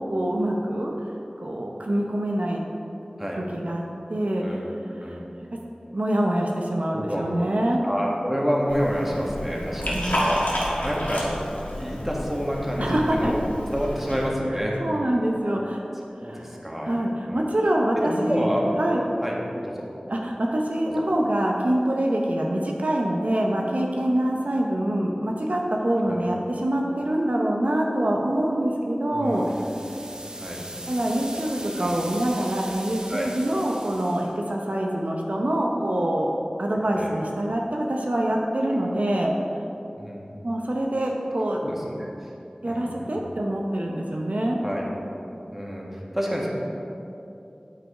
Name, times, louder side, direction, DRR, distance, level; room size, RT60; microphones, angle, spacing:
voice 1, 0.1-0.9 1.4-2.6 3.5-3.8 4.1-4.6 5.1-5.2 5.9-7.8 9.8-10.2 12.8-13.3 14.8-15.8 16.2-16.5 16.8-18.5 18.8-19.0 20.1-29.6 30.9-36.3 36.6-39.3 40.4-41.6 42.6-44.6, right 1 dB, 70° right, -1 dB, 0.7 m, -25 dB
voice 2, 4.4-4.7 5.0-5.3 6.9-7.3 7.8-10.4 10.8-11.3 11.8-13.4 13.7-14.8 15.6-15.8 16.2-17.0 17.2-17.4 18.0-18.6 19.2-19.3 19.6-19.8 20.8-21.0 26.1-26.3 29.1-29.5 30.4-30.6 31.8-31.9 33.1-33.3 36.9-37.2 38.7-38.8 39.9-40.3 41.6-41.9 42.2-42.3 42.6-43.2 44.6-44.9 45.5-46.5, equal, 10° right, -3 dB, 1.6 m, -29 dB
Liquid, 8.7-14.3, equal, 85° left, 1.5 m, -30 dB
sound 1, 29.3-34.3, right 1 dB, 30° right, 0.8 m, -39 dB
9.1 x 4.8 x 4.9 m, 2.8 s
wide cardioid pair, 40°, 3 cm